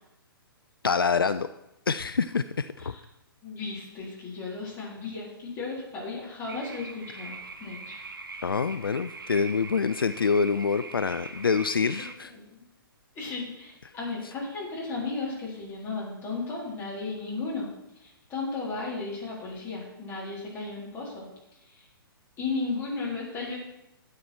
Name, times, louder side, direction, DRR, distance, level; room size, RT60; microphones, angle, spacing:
voice 1, 0.8-1.5 1.9-2.9 8.4-12.3, left 5 dB, 70° left, 12 dB, 0.5 m, -26 dB
voice 2, 3.4-8.0 12.3-12.6 13.1-17.7 18.0-21.3 21.6-21.9 22.4-23.6, left 3 dB, 20° left, -5 dB, 4.1 m, -35 dB
sound 1, 6.5-12.1, right 3 dB, 65° right, 1.0 m, -42 dB
13.0 x 8.7 x 4.5 m, 0.89 s
figure-of-eight pair, 120°, 12 cm